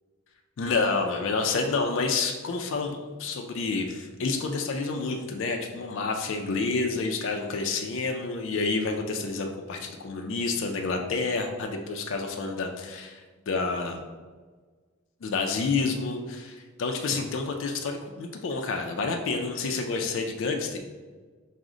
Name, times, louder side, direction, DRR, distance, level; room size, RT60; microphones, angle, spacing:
voice 1, 0.6-14.0 15.2-20.8, left 4 dB, 65° left, 3 dB, 0.4 m, -29 dB
4.8 x 2.1 x 3.7 m, 1.4 s
head